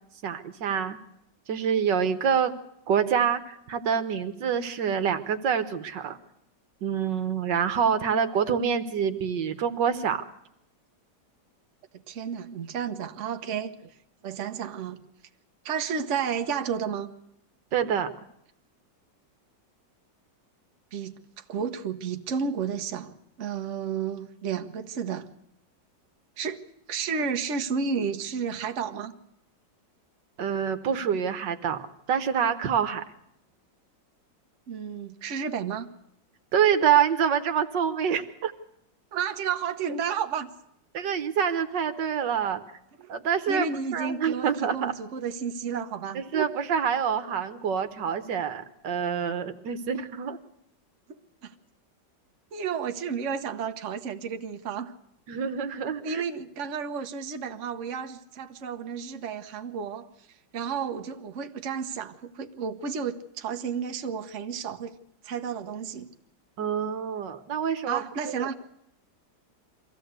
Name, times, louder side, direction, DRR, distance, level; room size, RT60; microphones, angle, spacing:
voice 1, 0.2-1.0 1.5-2.5 2.9-6.2 6.8-10.2 17.7-18.1 30.4-33.0 36.5-38.5 39.9-40.0 40.9-42.6 43.1-43.7 43.9-44.9 46.1-50.4 55.3-56.2 66.6-68.5, right 7 dB, 75° right, 10 dB, 1.8 m, -26 dB
voice 2, 12.1-13.9 14.2-15.0 15.6-17.1 20.9-25.3 26.4-26.6 26.9-29.1 34.7-35.9 39.1-40.5 43.5-46.5 51.1-51.5 52.5-54.9 56.0-60.1 60.5-65.0 65.2-66.1 67.9-68.6, right 6 dB, 45° right, 6 dB, 1.3 m, -32 dB
23.5 x 15.5 x 8.1 m, 0.78 s
omnidirectional pair, 1.9 m